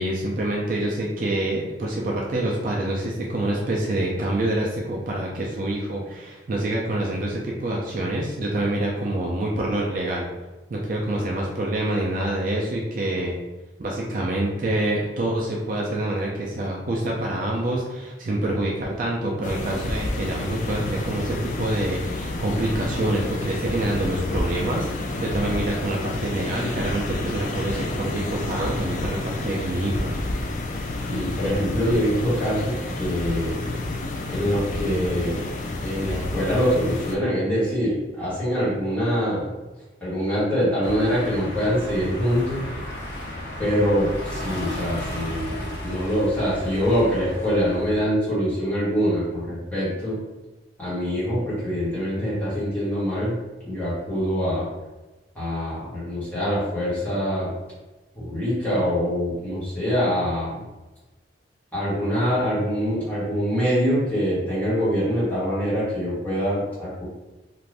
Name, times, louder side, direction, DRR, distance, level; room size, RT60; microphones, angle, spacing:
voice 1, 0.0-10.3 10.7-13.4 13.8-30.1, right 1 dB, 45° right, -2 dB, 0.4 m, -26 dB
sound 1, 19.4-37.2, left 2 dB, 45° left, 0.3 m, -30 dB
voice 2, 31.1-33.6 34.3-35.4 35.8-39.5 40.0-42.6 43.6-50.2 50.8-53.3 53.6-54.7 55.3-57.5 58.1-60.6 61.7-67.0, equal, 10° left, -11 dB, 1.3 m, -24 dB
sound 2, 40.8-48.1, left 1 dB, 70° left, 0.7 m, -34 dB
2.5 x 2.5 x 3.2 m, 1.1 s
head